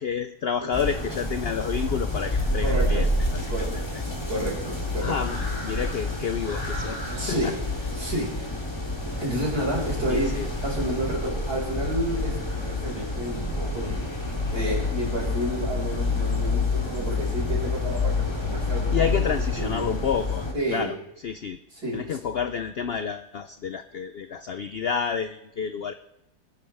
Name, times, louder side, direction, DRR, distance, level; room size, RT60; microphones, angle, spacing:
voice 1, 0.0-3.8 5.0-7.5 10.1-10.5 18.9-20.9 21.2-21.6 21.9-25.9, left 7 dB, 80° left, 9 dB, 0.5 m, -30 dB
sound 1, 0.7-20.5, left 2 dB, 15° left, 2.2 m, -28 dB
voice 2, 2.6-3.1 3.5-3.9 4.3-5.4 7.1-7.6 8.0-8.5 9.2-10.3 10.6-14.3 14.5-19.2 19.6-19.9 20.5-21.0 21.7-22.2, right 1 dB, 65° right, -3 dB, 5.5 m, -30 dB
26.0 x 10.0 x 3.4 m, 0.82 s
omnidirectional pair, 1.7 m